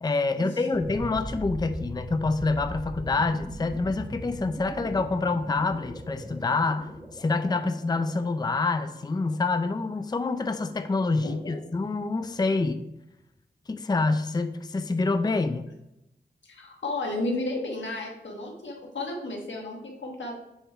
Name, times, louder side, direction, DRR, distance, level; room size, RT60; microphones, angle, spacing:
voice 1, 0.0-12.8 13.7-15.6, left 3 dB, 20° left, 9 dB, 0.4 m, -27 dB
sound 1, 0.7-9.6, equal, 10° right, 1.7 m, -40 dB
voice 2, 11.2-11.6 16.4-20.3, left 2 dB, 90° left, 0 dB, 1.3 m, -33 dB
7.0 x 3.6 x 4.4 m, 0.86 s
cardioid pair, 55°, 19 cm